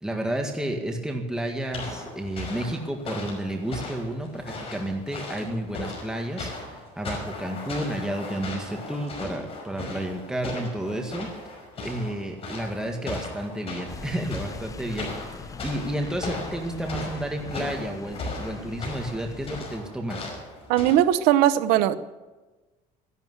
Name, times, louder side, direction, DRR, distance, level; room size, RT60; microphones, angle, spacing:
voice 1, 0.0-4.4 4.7-11.3 11.8-20.3, right 1 dB, 5° right, 2 dB, 1.8 m, -31 dB
sound 1, 1.7-20.9, left 2 dB, 40° left, 5.6 m, -37 dB
sound 2, 13.9-19.6, left 4 dB, 20° left, 0.8 m, -41 dB
voice 2, 20.7-22.0, right 12 dB, 90° right, 13 dB, 0.8 m, -19 dB
14.0 x 11.5 x 8.0 m, 1.2 s
cardioid pair, 120°, 15 cm